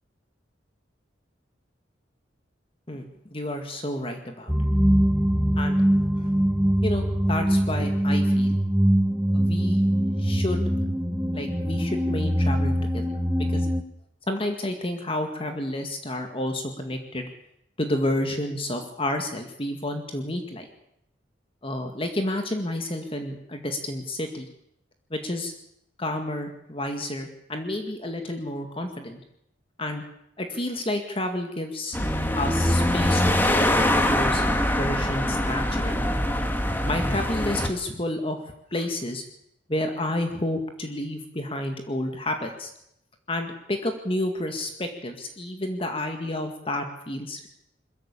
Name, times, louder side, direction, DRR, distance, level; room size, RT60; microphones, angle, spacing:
voice 1, 2.9-4.5 5.6-6.3 6.8-8.6 9.3-9.8 10.2-10.7 11.3-13.1 13.4-13.7 14.3-17.3 17.8-20.7 21.6-24.5 25.1-25.5 26.0-29.2 29.8-30.0 30.4-32.1 32.4-34.4 34.8-36.0 36.8-38.4 38.7-39.2 39.7-42.7 43.3-47.5, left 1 dB, 30° left, 5 dB, 2.0 m, -30 dB
sound 1, 4.5-13.8, equal, 5° right, 1.0 m, -23 dB
sound 2, 31.9-37.7, left 1 dB, 10° left, 1.6 m, -23 dB
21.5 x 14.5 x 8.6 m, 0.76 s
head